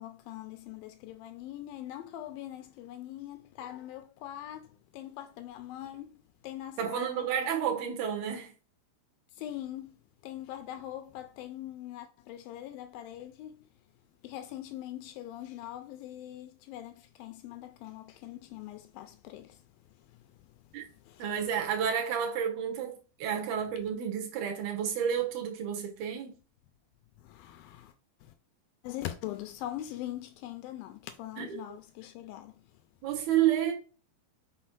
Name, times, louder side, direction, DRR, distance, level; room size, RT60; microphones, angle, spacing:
voice 1, 0.0-7.3 9.4-13.6 14.2-19.6 20.0-20.4 20.8-21.3 27.2-27.9 28.2-28.3 28.8-32.6, left 13 dB, 90° left, 2.1 m, -42 dB
voice 2, 6.8-8.5 20.7-20.9 21.2-26.4 31.4-31.6 33.0-33.7, right 9 dB, 75° right, 2.8 m, -30 dB
6.4 x 4.2 x 6.0 m
omnidirectional pair, 4.8 m